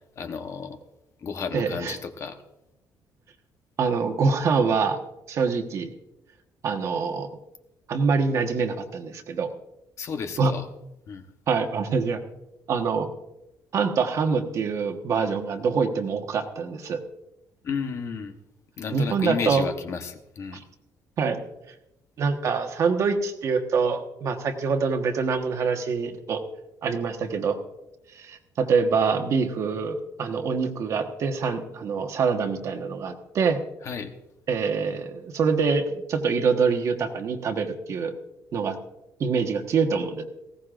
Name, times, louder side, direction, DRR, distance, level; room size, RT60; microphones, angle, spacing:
voice 1, 0.2-0.8 1.2-2.4 10.0-10.7 11.1-11.2 17.6-18.3 18.8-20.6 33.8-34.1, left 5 dB, 40° left, 6 dB, 1.1 m, -32 dB
voice 2, 1.5-1.9 3.8-5.0 5.3-5.9 6.6-7.3 7.9-9.5 10.4-10.5 11.5-12.2 12.7-13.1 13.7-17.0 18.9-19.6 20.5-20.6 21.2-21.4 22.2-26.4 26.8-27.6 28.1-33.6 34.5-38.1 38.5-38.8 39.2-40.2, right 5 dB, 45° right, 5 dB, 1.4 m, -25 dB
19.5 x 16.5 x 2.5 m, 0.91 s
cardioid pair, 170°, 7 cm